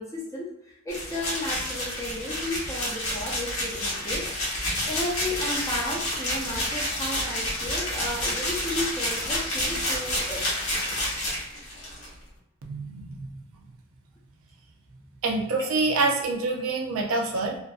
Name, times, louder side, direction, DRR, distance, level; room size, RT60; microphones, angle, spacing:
voice 1, 0.0-4.3 4.8-10.5 15.6-15.7, left 1 dB, 15° left, -4 dB, 0.6 m, -33 dB
sound 1, 0.9-12.1, left 1 dB, 75° left, 0.9 m, -29 dB
voice 2, 12.6-13.4 15.2-17.6, right 3 dB, 75° right, 1 dB, 0.5 m, -26 dB
2.5 x 2.4 x 2.3 m, 0.82 s
head